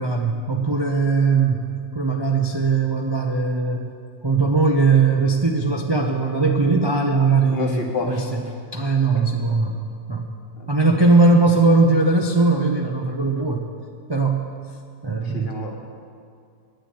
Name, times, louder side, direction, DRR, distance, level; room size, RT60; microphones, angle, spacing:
voice 1, 0.0-1.7 1.9-3.9 4.2-8.4 8.7-9.7 10.1-10.3 10.7-13.7 14.1-14.5 15.0-15.5, right 3 dB, 30° right, 2 dB, 0.5 m, -19 dB
voice 2, 7.5-8.4 9.1-9.2 10.6-10.7 15.2-15.8, left 4 dB, 40° left, 2 dB, 1.6 m, -29 dB
9.9 x 9.7 x 8.4 m, 2.3 s
omnidirectional pair, 1.6 m